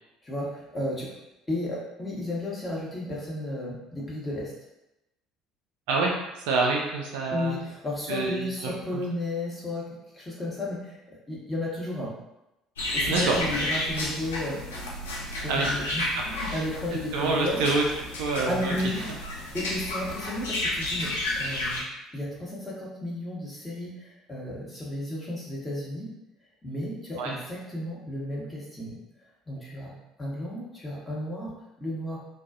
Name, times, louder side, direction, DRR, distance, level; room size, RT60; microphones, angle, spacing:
voice 1, 0.2-1.1 1.5-4.5 7.3-9.8 10.1-11.0 11.3-12.1 12.9-14.6 15.4-17.6 18.5-19.1 19.5-21.8 22.1-26.1 26.6-29.0 29.5-29.9 30.2-31.5 31.8-32.2, left 1 dB, 20° left, -5 dB, 1.0 m, -33 dB
voice 2, 5.9-7.6 8.1-9.0 13.0-13.4 13.7-13.8 15.5-16.1 16.4-16.6 17.1-17.8 18.1-18.7 27.2-27.3, right 3 dB, 65° right, 0 dB, 0.4 m, -27 dB
sound 1, 12.8-21.8, left 1 dB, 75° left, 0.4 m, -31 dB
2.3 x 2.3 x 2.4 m, 0.92 s
figure-of-eight pair, 55°, 0 cm